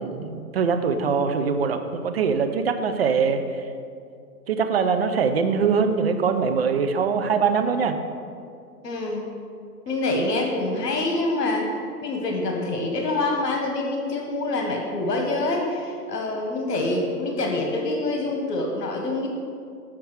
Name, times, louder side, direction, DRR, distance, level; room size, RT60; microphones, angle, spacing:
voice 1, 0.0-3.7 4.5-8.0, right 5 dB, 40° right, 7 dB, 0.5 m, -23 dB
voice 2, 8.8-9.3 9.9-11.6 12.0-19.3, left 2 dB, 80° left, 1 dB, 1.4 m, -26 dB
7.3 x 4.5 x 6.0 m, 2.4 s
hypercardioid pair, 145°, 48 cm